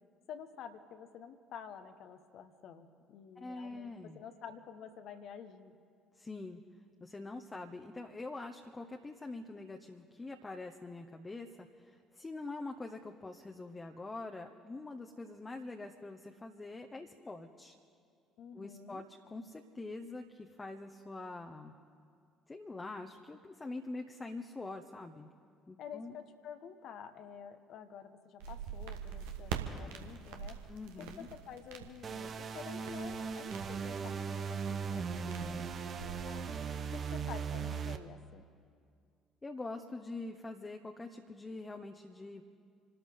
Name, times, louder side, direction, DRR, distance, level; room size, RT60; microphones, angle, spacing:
voice 1, 0.3-5.8 18.4-19.0 25.8-30.6 31.0-36.5 36.9-38.5, left 7 dB, 55° left, 9 dB, 1.2 m, -50 dB
voice 2, 3.4-4.2 6.1-6.6 7.0-17.8 18.5-21.7 22.5-25.3 25.7-26.1 30.7-31.3 35.3-35.7 39.4-42.4, left 2 dB, 20° left, 3 dB, 1.2 m, -44 dB
sound 1, 28.4-36.5, right 7 dB, 65° right, 1.4 m, -45 dB
sound 2, 32.0-38.0, right 6 dB, 40° right, 1.0 m, -38 dB
28.5 x 13.0 x 3.8 m, 2.3 s
figure-of-eight pair, 50°, 0 cm